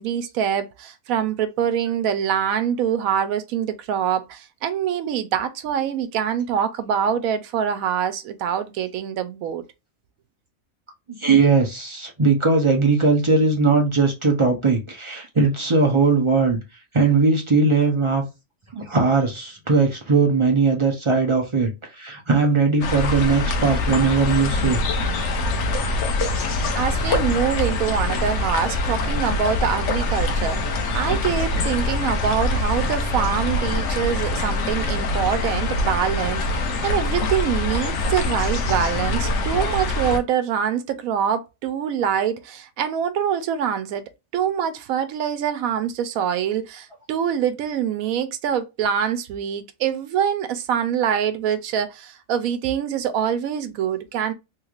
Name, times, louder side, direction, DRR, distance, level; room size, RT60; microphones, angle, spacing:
voice 1, 0.0-9.6 26.7-54.3, right 8 dB, 90° right, 1.0 m, -24 dB
voice 2, 11.1-16.6 16.9-18.2 18.7-24.8, right 4 dB, 35° right, 0.5 m, -19 dB
sound 1, 22.8-40.2, left 2 dB, 65° left, 0.9 m, -24 dB
3.1 x 3.1 x 2.4 m
omnidirectional pair, 1.4 m